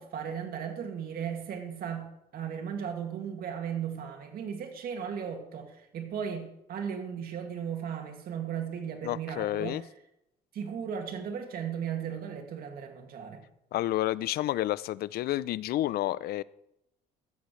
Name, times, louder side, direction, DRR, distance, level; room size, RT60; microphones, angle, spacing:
voice 1, 0.0-2.0 2.3-9.9 10.5-13.4, right 7 dB, 60° right, 3 dB, 2.3 m, -36 dB
voice 2, 9.0-9.8 13.7-16.4, left 14 dB, 65° left, 19 dB, 0.5 m, -30 dB
16.0 x 13.0 x 3.2 m, 0.83 s
cardioid pair, 110°, 17 cm